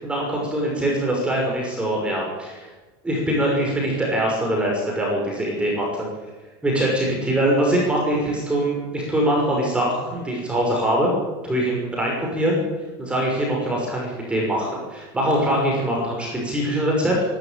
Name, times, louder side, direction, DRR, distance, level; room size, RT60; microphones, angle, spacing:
voice 1, 0.0-2.7 3.0-6.1 6.6-11.1 11.4-12.6 13.0-17.1, right 1 dB, 10° right, -2 dB, 5.9 m, -23 dB
22.0 x 13.0 x 9.2 m, 1.2 s
supercardioid pair, 150°, 14 cm